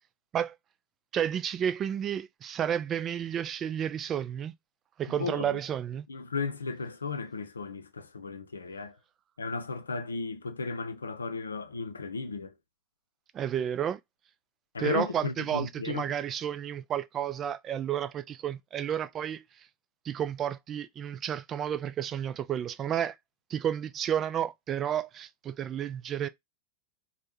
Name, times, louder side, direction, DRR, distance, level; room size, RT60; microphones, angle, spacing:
voice 1, 1.1-4.5 5.0-6.1 13.3-14.0 14.8-19.7 20.0-23.2 23.5-26.3, right 9 dB, 25° right, 0.4 m, -31 dB
voice 2, 5.2-5.6 6.1-9.0 9.4-12.5 14.7-16.1, left 4 dB, 75° left, 0.6 m, -35 dB
4.3 x 2.2 x 3.3 m
figure-of-eight pair, 90°, 0 cm